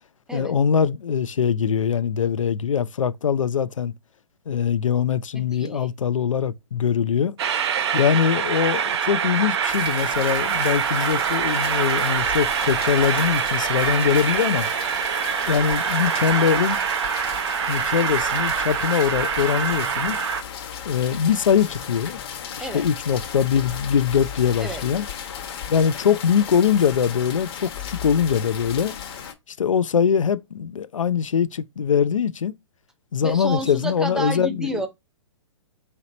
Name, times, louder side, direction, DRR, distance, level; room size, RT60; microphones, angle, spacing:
voice 1, 0.3-3.9 4.5-7.4 7.9-14.7 15.5-16.8 17.7-20.2 20.9-22.2 22.6-25.1 25.7-28.9 29.5-32.5 33.1-34.7, left 7 dB, 85° left, 0.4 m, -22 dB
voice 2, 5.3-5.9 22.6-22.8 24.6-24.8 33.2-34.9, right 1 dB, 5° right, 0.6 m, -30 dB
Train, 7.4-20.4, right 8 dB, 55° right, 0.7 m, -24 dB
sound 1, 9.7-29.3, left 8 dB, 50° left, 1.0 m, -35 dB
3.1 x 2.8 x 3.9 m
hypercardioid pair, 130°, 16 cm